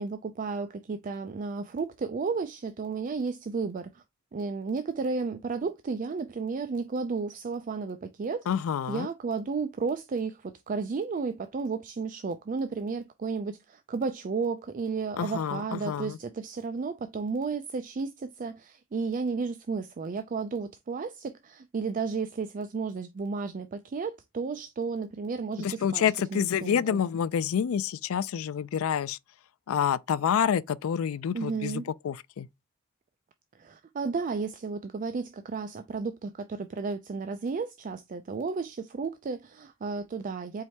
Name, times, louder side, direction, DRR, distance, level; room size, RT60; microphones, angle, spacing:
voice 1, 0.0-4.0 4.3-8.5 8.9-26.0 26.3-27.0 31.3-31.9 33.5-40.6, right 4 dB, 40° right, 0.4 m, -33 dB
voice 2, 8.5-9.1 15.2-16.2 25.6-29.2 29.7-32.5, left 8 dB, 90° left, 0.4 m, -28 dB
4.7 x 3.2 x 2.8 m
head